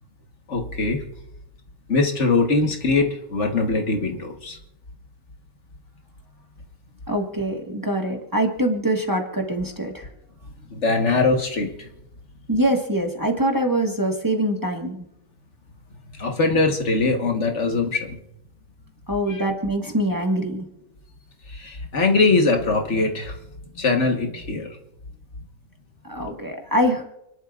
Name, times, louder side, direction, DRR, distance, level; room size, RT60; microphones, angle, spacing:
voice 1, 0.5-1.0 1.9-4.6 10.7-11.7 16.2-18.2 19.3-19.4 21.5-23.3 23.8-24.8, left 3 dB, 65° left, 3 dB, 1.7 m, -22 dB
voice 2, 7.1-10.1 12.5-15.0 19.1-20.6 26.0-27.0, right 1 dB, 15° right, 1 dB, 1.5 m, -24 dB
29.0 x 11.0 x 2.4 m, 0.83 s
omnidirectional pair, 1.3 m